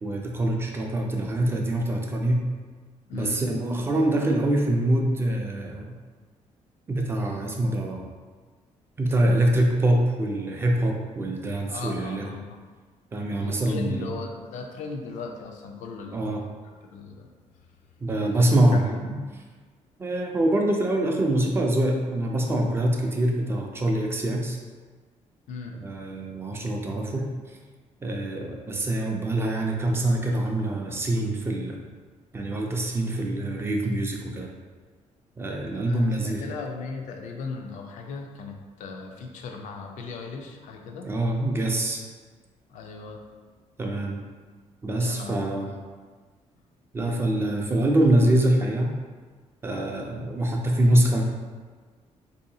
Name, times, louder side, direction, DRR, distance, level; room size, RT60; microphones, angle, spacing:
voice 1, 0.0-2.5 3.1-5.9 6.9-8.1 9.0-12.3 13.1-14.1 16.1-16.4 18.0-19.2 20.0-24.6 25.8-27.6 28.0-31.8 32.3-34.5 35.4-36.5 41.0-42.0 43.8-44.2 44.8-45.7 46.9-48.9 49.6-51.2, right 1 dB, 20° right, 0 dB, 0.3 m, -24 dB
voice 2, 3.1-3.4 11.7-12.6 13.4-16.4 16.8-17.3 18.3-19.2 25.5-25.8 35.7-41.1 42.7-43.3 44.8-45.8, left 4 dB, 85° left, 3 dB, 0.4 m, -38 dB
3.9 x 2.7 x 2.7 m, 1.4 s
cardioid pair, 180°, 12 cm